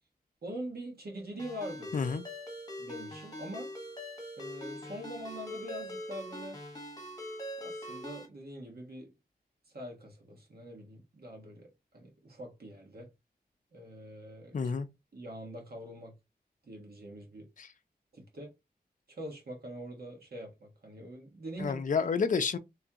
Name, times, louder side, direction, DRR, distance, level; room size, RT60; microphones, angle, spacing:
voice 1, 0.4-1.9 2.8-3.7 4.4-6.6 7.6-9.1 9.7-11.7 11.9-13.1 13.7-14.7 15.1-16.1 16.6-17.5 18.1-18.5 19.1-21.8, equal, 70° right, 1.4 m, -43 dB
Ringtone, 1.4-8.3, equal, 25° left, 1.3 m, -43 dB
voice 2, 1.9-2.2 14.5-14.9 17.6-17.7 21.6-22.6, left 5 dB, 50° left, 0.4 m, -29 dB
3.5 x 3.2 x 2.8 m
wide cardioid pair, 105°, 17 cm